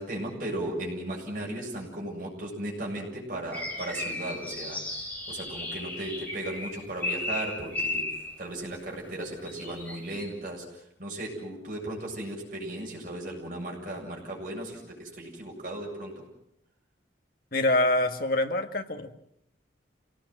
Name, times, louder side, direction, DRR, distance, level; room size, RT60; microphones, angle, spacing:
voice 1, 0.0-8.1 8.4-16.2, right 1 dB, 45° right, -1 dB, 7.7 m, -36 dB
sound 1, 3.5-8.4 9.2-10.3, left 2 dB, 10° left, 4.0 m, -35 dB
voice 2, 17.5-19.1, left 2 dB, 55° left, 6 dB, 1.7 m, -25 dB
27.5 x 18.5 x 7.7 m, 0.76 s
head